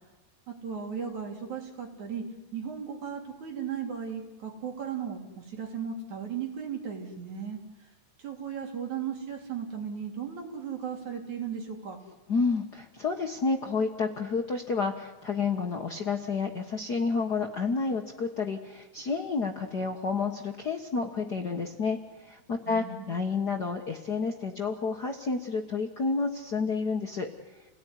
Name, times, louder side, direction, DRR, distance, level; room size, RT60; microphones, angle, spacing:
voice 1, 0.5-2.2 2.5-7.6 8.2-12.0 22.7-23.2, right 7 dB, 65° right, 1 dB, 4.7 m, -36 dB
voice 2, 12.3-27.3, left 4 dB, 45° left, 2 dB, 1.3 m, -30 dB
29.0 x 18.0 x 10.0 m, 1.1 s
omnidirectional pair, 3.6 m